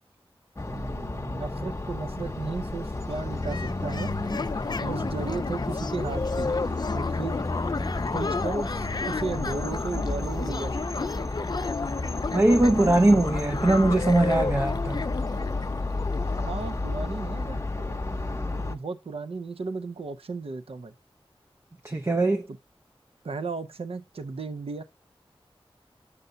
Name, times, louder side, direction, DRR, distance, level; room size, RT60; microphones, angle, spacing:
sound 1, 0.6-18.8, left 2 dB, 30° left, 0.8 m, -32 dB
voice 1, 0.7-4.1 4.8-6.5 6.9-7.4 8.1-10.8 16.4-20.9 22.5-22.6 23.2-24.8, right 4 dB, 70° right, 0.7 m, -35 dB
sound 2, 2.9-17.5, left 4 dB, 45° left, 0.4 m, -33 dB
voice 2, 12.3-15.0 21.8-22.5, right 2 dB, 25° right, 0.5 m, -21 dB
6.9 x 6.8 x 2.6 m
wide cardioid pair, 60°, 10 cm